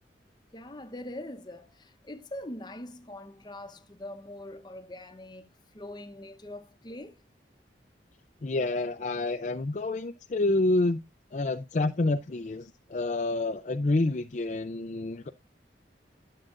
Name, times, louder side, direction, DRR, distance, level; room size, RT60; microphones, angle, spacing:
voice 1, 0.5-7.2, left 1 dB, 25° left, 0.8 m, -43 dB
voice 2, 8.4-11.0 11.3-15.3, left 2 dB, 45° left, 0.4 m, -28 dB
12.0 x 7.6 x 2.5 m
head